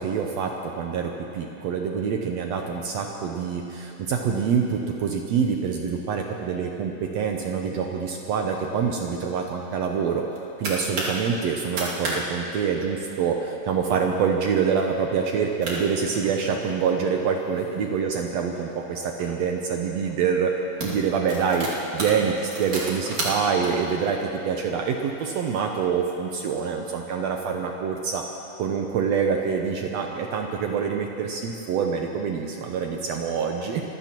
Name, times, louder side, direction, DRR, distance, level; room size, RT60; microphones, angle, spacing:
voice 1, 0.0-10.2 10.6-20.5 20.8-28.3 28.6-33.8, right 6 dB, 80° right, 2 dB, 1.5 m, -26 dB
sound 1, 10.1-11.2 11.6-12.2 12.4-12.5 12.9-13.2 13.8-14.0 14.5-14.6 15.3-15.4 15.6-16.8 17.4-19.3 20.0-20.2 20.5-23.7, right 2 dB, 55° right, 3.6 m, -32 dB
25.5 x 15.5 x 3.0 m, 2.9 s
omnidirectional pair, 4.0 m